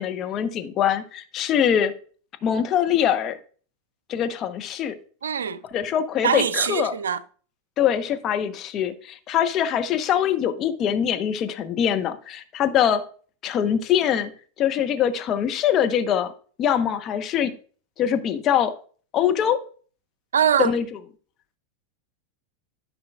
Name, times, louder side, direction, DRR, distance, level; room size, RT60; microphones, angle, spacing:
voice 1, 0.0-1.9 2.4-3.4 4.1-5.0 5.7-6.9 7.8-13.0 13.4-14.3 14.6-16.3 16.6-17.5 18.0-18.7 19.1-19.6 20.6-21.0, left 9 dB, 40° left, 0.9 m, -23 dB
voice 2, 5.2-5.6 6.2-7.2 20.3-20.7, right 8 dB, 75° right, 0.5 m, -22 dB
13.5 x 5.5 x 2.4 m
figure-of-eight pair, 85°, 0 cm